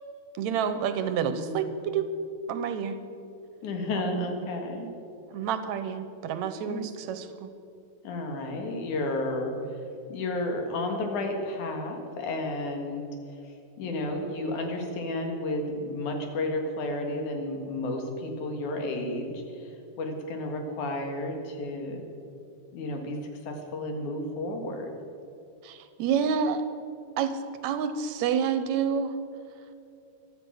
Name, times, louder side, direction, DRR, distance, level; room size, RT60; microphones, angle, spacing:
voice 1, 0.4-2.1 2.5-3.0 4.0-4.3 5.3-7.5 25.6-26.6 27.2-29.2, right 7 dB, 75° right, 10 dB, 2.1 m, -29 dB
voice 2, 1.2-1.6 3.6-4.9 6.6-6.9 8.0-9.5 10.1-13.1 13.8-19.7 20.0-22.0 22.7-23.2 23.5-24.9, left 2 dB, 90° left, 3 dB, 3.3 m, -32 dB
16.0 x 12.0 x 6.4 m, 2.6 s
omnidirectional pair, 3.4 m